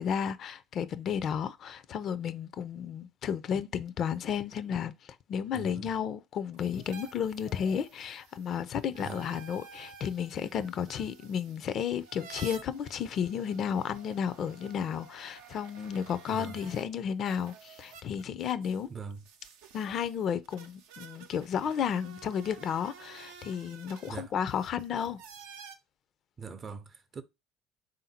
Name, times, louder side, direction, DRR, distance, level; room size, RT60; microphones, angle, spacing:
voice 1, 0.0-4.9 5.3-18.9 19.7-25.2, left 8 dB, 55° left, 0.4 m, -33 dB
voice 2, 5.5-5.9 9.0-9.2 16.3-16.6 18.9-19.3 24.1-24.3 26.4-27.2, right 5 dB, 40° right, 0.6 m, -42 dB
sound 1, 6.5-16.8 17.2-25.7, right 6 dB, 80° right, 0.6 m, -51 dB
3.6 x 2.6 x 4.2 m
hypercardioid pair, 70°, 0 cm